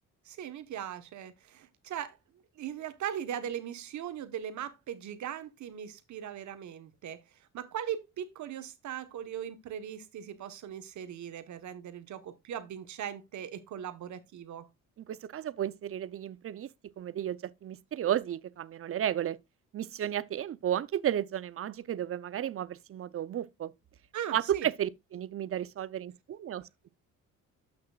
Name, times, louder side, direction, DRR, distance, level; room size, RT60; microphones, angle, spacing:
voice 1, 0.2-2.2 2.5-7.2 7.5-14.7 24.1-24.7, right 9 dB, 70° right, 1.2 m, -39 dB
voice 2, 15.0-16.7 17.0-19.4 19.7-23.7 24.3-26.9, right 10 dB, 45° right, 0.6 m, -33 dB
12.0 x 6.0 x 2.3 m
cardioid pair, 90°, 30 cm